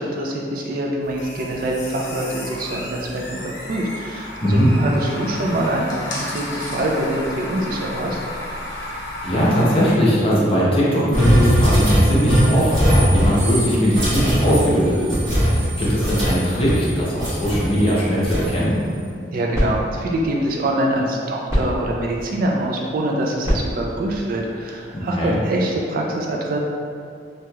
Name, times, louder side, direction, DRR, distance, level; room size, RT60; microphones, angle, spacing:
voice 1, 0.0-8.2 19.3-26.6, right 1 dB, 50° right, -1 dB, 0.3 m, -24 dB
sound 1, 1.0-9.9, left 1 dB, 70° left, 0.7 m, -32 dB
voice 2, 8.6-15.2 15.8-18.8 24.9-25.3, equal, 30° left, -7 dB, 0.7 m, -20 dB
sound 2, 11.1-16.9 17.2-18.6, equal, 75° right, 1.2 m, -19 dB
sound 3, 19.0-25.4, equal, 20° right, 1.3 m, -29 dB
3.0 x 2.7 x 2.3 m, 2.3 s
head